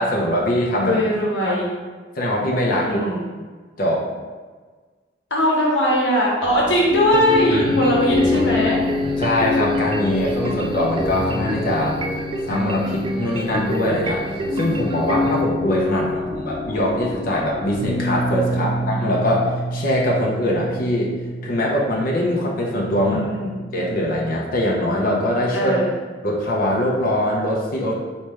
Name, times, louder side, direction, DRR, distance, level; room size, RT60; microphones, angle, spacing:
voice 1, 0.0-1.0 1.4-1.5 2.2-3.1 3.8-4.0 7.5-7.6 9.2-12.0 12.5-14.2 14.5-21.1 21.4-23.2 23.7-25.7 26.2-28.0, left 1 dB, 50° left, -3 dB, 0.7 m, -22 dB
voice 2, 0.8-1.8 2.8-3.3 5.3-8.8 15.0-16.4 18.5-19.0 23.0-23.6 25.5-25.9, equal, 90° left, -4 dB, 1.0 m, -21 dB
sound 1, 6.4-24.2, left 2 dB, 10° left, 1.5 m, -27 dB
sound 2, 7.1-15.4, right 1 dB, 30° right, 0.3 m, -28 dB
4.3 x 3.2 x 3.4 m, 1.4 s
head